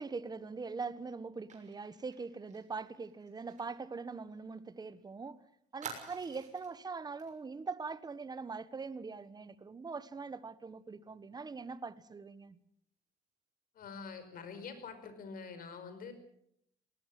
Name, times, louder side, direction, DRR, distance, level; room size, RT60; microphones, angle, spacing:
voice 1, 0.0-5.4 5.7-12.6, right 4 dB, 25° right, 1.3 m, -42 dB
Fire, 1.5-4.9 5.2-5.3 5.8-6.8 7.2-7.4 7.7-7.9, right 6 dB, 45° right, 6.4 m, -50 dB
voice 2, 13.7-16.1, left 5 dB, 60° left, 5.1 m, -46 dB
20.0 x 19.5 x 7.7 m
cardioid pair, 110°, 17 cm